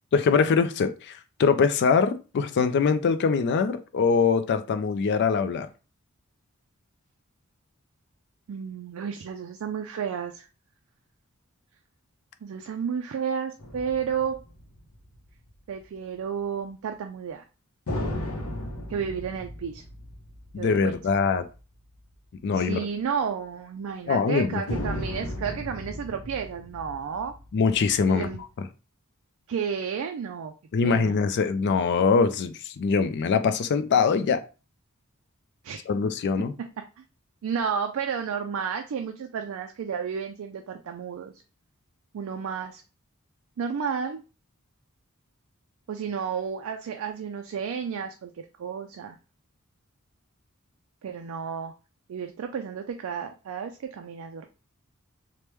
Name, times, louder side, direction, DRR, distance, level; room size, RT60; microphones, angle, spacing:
voice 1, 0.1-5.7 20.5-21.5 22.4-22.8 24.1-24.8 27.5-28.3 30.7-34.4 35.9-36.5, left 5 dB, 55° left, 0.3 m, -23 dB
voice 2, 8.5-10.5 12.4-14.4 15.7-17.4 18.9-19.8 20.6-20.9 22.5-27.3 28.1-28.4 29.5-30.5 30.8-31.2 35.6-35.8 36.4-37.0 37.4-41.3 42.1-42.8 43.6-44.2 45.9-49.2 51.0-51.7 52.1-54.5, right 7 dB, 70° right, 0.3 m, -32 dB
sound 1, 13.6-15.5 17.9-21.6 21.9-22.0 24.7-28.4, left 1 dB, 85° left, 0.7 m, -36 dB
3.3 x 2.1 x 3.0 m
head